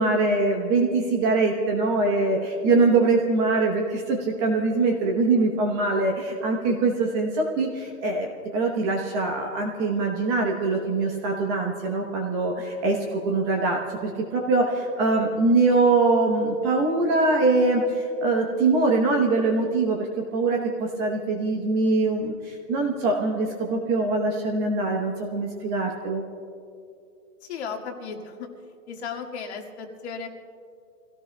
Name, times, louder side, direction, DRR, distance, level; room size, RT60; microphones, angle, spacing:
voice 1, 0.0-8.3 8.5-20.1 20.3-26.2, right 3 dB, 20° right, 1 dB, 0.9 m, -23 dB
voice 2, 27.4-28.5 28.9-30.3, left 5 dB, 45° left, 3 dB, 1.9 m, -35 dB
29.0 x 17.0 x 2.2 m, 2.5 s
hypercardioid pair, 155°, 47 cm